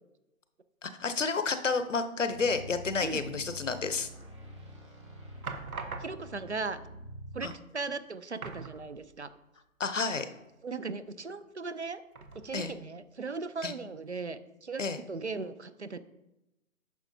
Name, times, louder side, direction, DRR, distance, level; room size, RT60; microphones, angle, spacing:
voice 1, 0.8-4.1 7.4-7.5 9.8-10.3 12.5-12.7 13.6-13.7 14.8-15.0, left 4 dB, 60° left, 10 dB, 0.7 m, -30 dB
sound 1, 2.2-7.5, equal, 20° right, 1.2 m, -46 dB
sound 2, 4.2-4.7 5.4-6.5 7.5-7.6 7.9-8.0 8.4-9.4 9.7-9.8 12.1-12.8 13.4-13.5, right 4 dB, 80° right, 1.2 m, -43 dB
voice 2, 6.0-6.8 7.3-9.3 10.6-12.0 12.4-14.8 15.1-16.0, right 4 dB, 55° right, 13 dB, 0.5 m, -37 dB
10.0 x 6.0 x 2.7 m, 0.92 s
hypercardioid pair, 180°, 42 cm